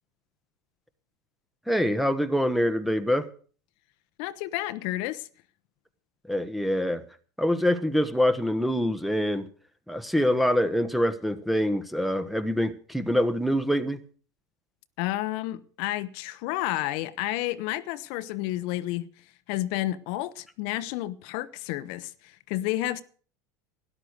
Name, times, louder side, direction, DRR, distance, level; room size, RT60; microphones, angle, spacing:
voice 1, 1.7-3.3 6.3-7.0 7.4-9.5 9.9-14.0, equal, ahead, 1.1 m, -25 dB
voice 2, 4.2-5.3 15.0-19.1 19.5-23.0, left 16 dB, 60° left, 0.9 m, -31 dB
12.5 x 11.0 x 6.5 m
supercardioid pair, 110°, 11 cm